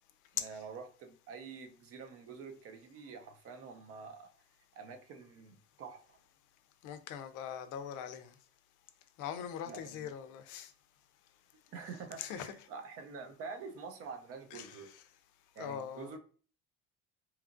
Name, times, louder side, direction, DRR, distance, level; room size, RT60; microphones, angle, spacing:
voice 1, 0.3-4.3 4.8-6.2 9.7-10.1 11.7-14.9 15.6-16.2, right 5 dB, 50° right, 0.6 m, -47 dB
voice 2, 6.8-8.3 9.2-10.7 12.2-12.5 14.5-14.8 15.6-16.1, left 9 dB, 85° left, 0.5 m, -41 dB
2.9 x 2.4 x 2.5 m
cardioid pair, 145°, 30 cm